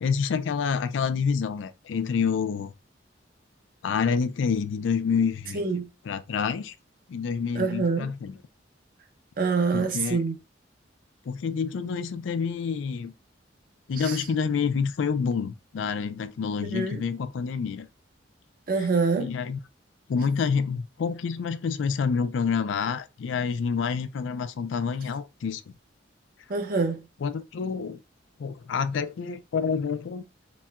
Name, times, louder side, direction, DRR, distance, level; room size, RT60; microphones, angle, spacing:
voice 1, 0.0-2.7 3.8-5.6 6.1-6.7 7.1-8.4 9.7-10.2 11.3-13.1 13.9-17.9 18.8-18.9 19.2-19.6 20.1-25.6 27.2-28.0 28.4-30.2, left 6 dB, 80° left, 0.4 m, -28 dB
voice 2, 5.5-5.9 7.5-8.1 9.4-10.4 14.0-14.2 16.6-16.9 18.7-19.3 26.5-27.0, right 4 dB, 50° right, 0.6 m, -25 dB
4.1 x 2.2 x 2.3 m
head